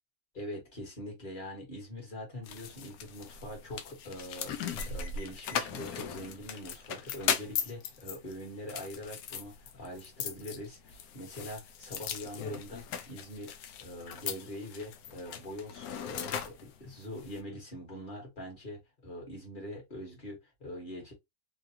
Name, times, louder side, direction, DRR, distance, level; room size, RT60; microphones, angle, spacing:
voice 1, 0.3-13.5 13.8-21.1, left 1 dB, 35° left, 1.4 m, -43 dB
sound 1, 2.4-17.4, left 8 dB, 75° left, 1.0 m, -39 dB
3.2 x 2.4 x 2.7 m
omnidirectional pair, 1.6 m